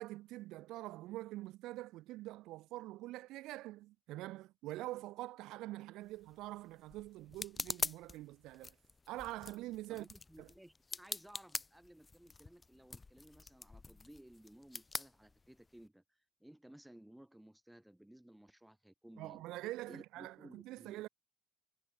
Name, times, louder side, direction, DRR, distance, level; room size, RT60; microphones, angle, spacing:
voice 1, 0.0-8.8 9.1-10.1 10.4-10.5 19.2-21.1, right 17 dB, 80° right, 1.8 m, -45 dB
sound 1, 6.0-15.9, left 3 dB, 15° left, 0.8 m, -45 dB
voice 2, 9.9-19.4 19.9-21.0, right 1 dB, 5° right, 4.6 m, -58 dB
cardioid pair, 165°, 0 cm